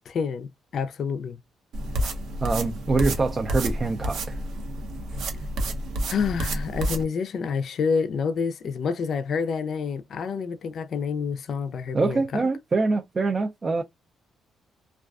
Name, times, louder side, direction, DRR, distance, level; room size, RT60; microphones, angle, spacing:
voice 1, 0.1-1.4 6.1-12.4, left 5 dB, 60° left, 0.4 m, -28 dB
sound 1, 1.7-7.0, right 1 dB, 80° right, 0.7 m, -29 dB
voice 2, 2.4-4.4 11.9-13.8, right 3 dB, 35° right, 0.4 m, -25 dB
2.3 x 2.3 x 2.3 m
cardioid pair, 90°, 0 cm